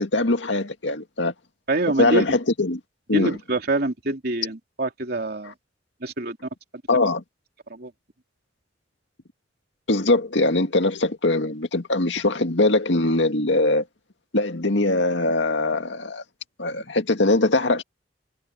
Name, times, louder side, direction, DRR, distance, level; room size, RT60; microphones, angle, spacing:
voice 1, 0.0-1.3 2.0-2.8 3.1-3.4 6.9-7.2 9.9-13.8 14.3-16.2 16.6-17.8, left 2 dB, 75° left, 2.1 m, -21 dB
voice 2, 1.7-2.2 3.1-5.5 6.0-6.5 7.7-7.9, right 2 dB, 60° right, 2.8 m, -25 dB
head